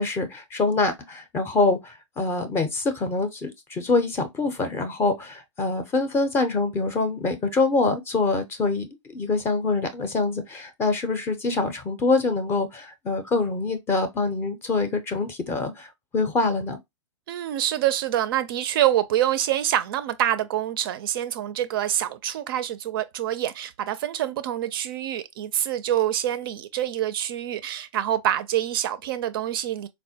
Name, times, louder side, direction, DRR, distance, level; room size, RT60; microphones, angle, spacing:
voice 1, 0.0-8.9 9.1-15.9 16.1-16.8, left 3 dB, 15° left, 0.5 m, -25 dB
voice 2, 17.3-29.9, right 12 dB, 50° right, 0.4 m, -26 dB
4.2 x 2.1 x 2.7 m
hypercardioid pair, 135°, 16 cm